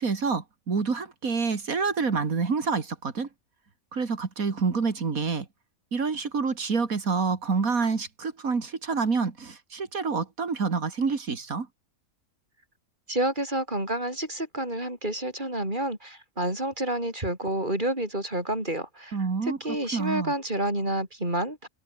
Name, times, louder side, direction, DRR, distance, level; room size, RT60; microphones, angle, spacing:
voice 1, 0.0-3.3 3.9-5.4 5.9-11.7 19.1-19.6 19.9-20.3, right 5 dB, 75° right, 2.7 m, -27 dB
voice 2, 13.1-19.2 19.4-21.7, right 1 dB, 35° right, 8.1 m, -29 dB
omnidirectional pair, 1.5 m